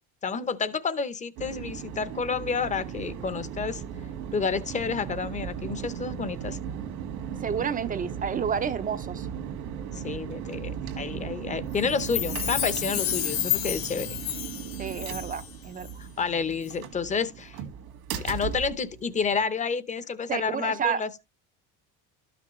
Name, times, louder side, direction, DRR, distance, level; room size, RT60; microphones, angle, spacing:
voice 1, 0.2-3.8 4.3-6.6 9.9-14.2 16.0-17.6 18.2-21.3, left 5 dB, 20° left, 0.7 m, -30 dB
sound 1, 1.4-19.4, right 8 dB, 75° right, 1.7 m, -37 dB
voice 2, 7.4-9.3 14.8-15.9 20.3-21.0, right 7 dB, 25° right, 0.5 m, -30 dB
Chime, 11.9-15.5 15.8-15.9, left 13 dB, 60° left, 1.7 m, -31 dB
12.5 x 6.0 x 3.0 m
cardioid pair, 135°, 32 cm